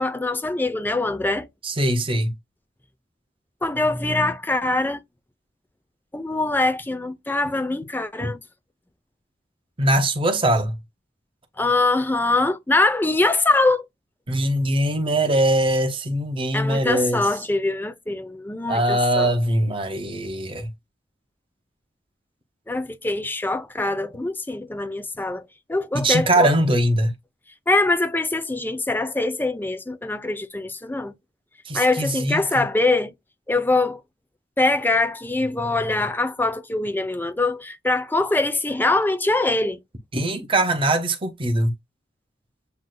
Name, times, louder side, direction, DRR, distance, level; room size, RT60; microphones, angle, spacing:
voice 1, 0.0-1.5 3.6-5.0 6.1-8.4 11.6-13.9 16.5-19.3 22.7-25.4 25.7-26.5 27.7-31.1 31.7-33.1 33.5-34.0 34.6-39.8, left 2 dB, 10° left, 0.5 m, -23 dB
voice 2, 1.6-2.3 8.2-8.3 9.8-10.8 14.3-17.2 18.7-20.7 25.9-27.1 31.7-32.6 40.1-41.7, right 1 dB, 30° right, 0.8 m, -21 dB
7.6 x 2.7 x 2.2 m
head